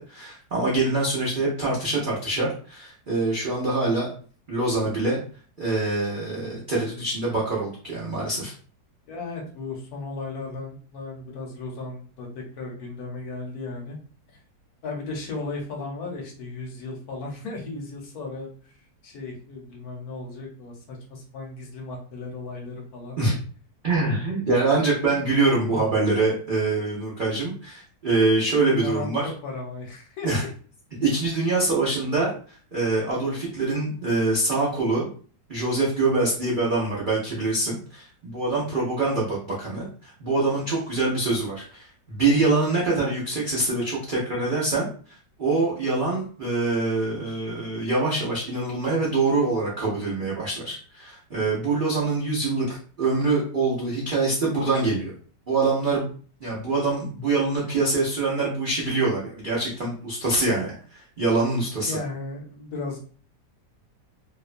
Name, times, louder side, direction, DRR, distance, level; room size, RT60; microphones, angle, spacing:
voice 1, 0.0-4.1 4.5-5.2 5.6-8.5 23.2-23.3 23.8-29.3 30.2-30.4 31.0-35.1 35.5-55.1 55.5-56.1 56.4-62.0, right 3 dB, 85° right, -5 dB, 0.4 m, -24 dB
voice 2, 9.1-14.0 14.8-18.7 19.0-23.2 25.5-26.0 28.6-29.1 29.4-30.5 61.8-63.0, left 3 dB, 65° left, 0 dB, 1.1 m, -35 dB
2.9 x 2.1 x 2.4 m, 0.43 s
omnidirectional pair, 1.8 m